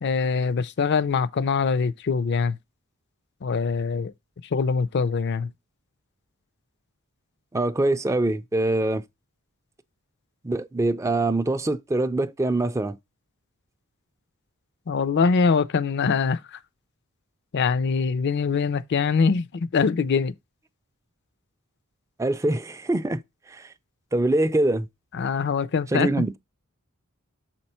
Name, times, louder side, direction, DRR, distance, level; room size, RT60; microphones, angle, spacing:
voice 1, 0.0-2.6 3.4-4.1 4.5-5.5 14.9-16.6 17.5-20.3 25.1-26.1, left 5 dB, 50° left, 0.4 m, -23 dB
voice 2, 7.5-9.0 10.4-13.0 22.2-23.2 23.5-23.7 24.1-24.9 25.9-26.4, right 2 dB, 15° right, 0.4 m, -24 dB
6.6 x 4.4 x 4.3 m
head